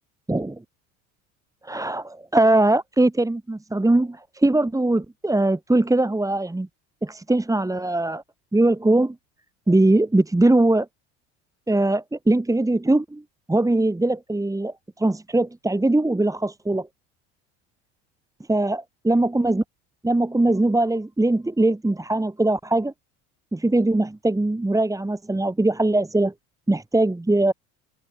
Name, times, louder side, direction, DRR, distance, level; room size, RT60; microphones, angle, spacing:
voice 1, 0.3-0.6 1.6-6.7 7.0-8.2 8.5-9.2 9.7-10.9 11.7-13.2 13.5-16.9 18.5-19.6 20.0-22.9 23.5-26.3 26.7-27.5, right 2 dB, 10° right, 4.1 m, -21 dB
open air
supercardioid pair, 85°, 37 cm